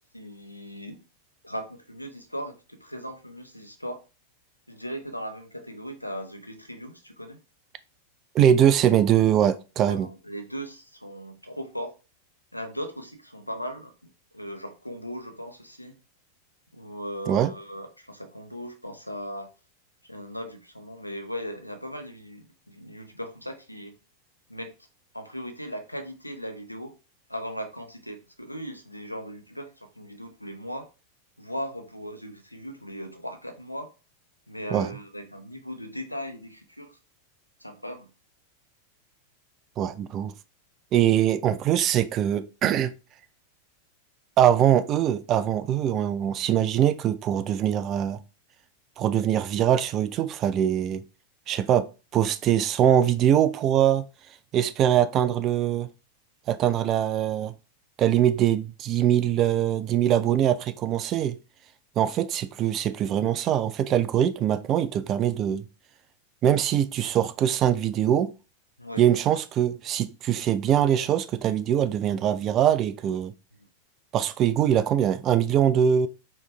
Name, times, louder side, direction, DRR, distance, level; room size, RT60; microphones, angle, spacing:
voice 1, 0.1-1.0 1.4-4.0 4.7-7.4 9.9-11.9 12.5-15.9 16.7-19.5 20.1-24.0 24.5-24.7 25.1-26.9 27.3-30.9 31.4-33.9 34.5-37.0 37.6-38.1 68.8-69.1, equal, 90° left, 0.6 m, -38 dB
voice 2, 8.3-10.1 17.3-17.5 34.7-34.9 39.8-40.3 40.9-42.9 44.4-48.2 49.0-51.0 51.5-51.9 52.1-54.0 54.5-55.9 56.5-57.5 58.0-61.4 62.0-65.6 66.4-68.3 69.0-73.3 74.1-76.1, right 10 dB, 35° right, 0.3 m, -22 dB
4.4 x 2.9 x 2.2 m
figure-of-eight pair, 90°, 0 cm